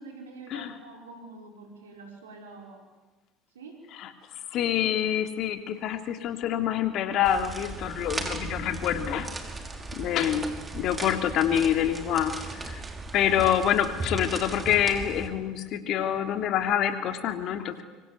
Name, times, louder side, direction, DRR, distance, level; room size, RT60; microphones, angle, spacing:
voice 1, 0.0-2.9 3.5-3.8, right 3 dB, 85° right, 2 dB, 5.9 m, -46 dB
voice 2, 4.5-9.3 9.9-12.3 12.7-12.8 13.1-17.8, left 10 dB, 55° left, 8 dB, 3.3 m, -26 dB
sound 1, 7.2-15.3, right 2 dB, 20° right, 5.3 m, -37 dB
25.0 x 24.5 x 9.7 m, 1.2 s
hypercardioid pair, 70°, 0 cm